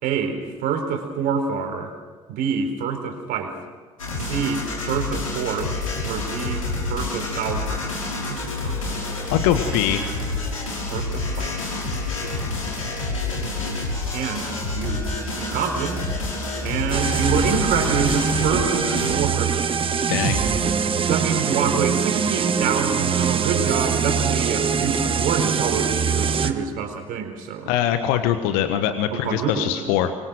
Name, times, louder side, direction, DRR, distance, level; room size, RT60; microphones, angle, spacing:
voice 1, 0.0-1.9 2.3-3.6 4.2-5.7 6.1-7.9 8.2-9.3 10.9-11.6 14.1-16.1 16.6-19.6 20.1-20.5 21.0-27.7 29.1-29.9, right 6 dB, 55° right, 5 dB, 4.3 m, -27 dB
sound 1, 4.0-19.1, left 3 dB, 85° left, 6.1 m, -28 dB
voice 2, 9.3-10.1 20.1-20.4 27.7-30.2, left 10 dB, 65° left, 9 dB, 1.4 m, -22 dB
sound 2, 16.9-26.5, right 6 dB, 30° right, 1.6 m, -23 dB
25.0 x 22.5 x 6.4 m, 1.5 s
figure-of-eight pair, 60°, 17 cm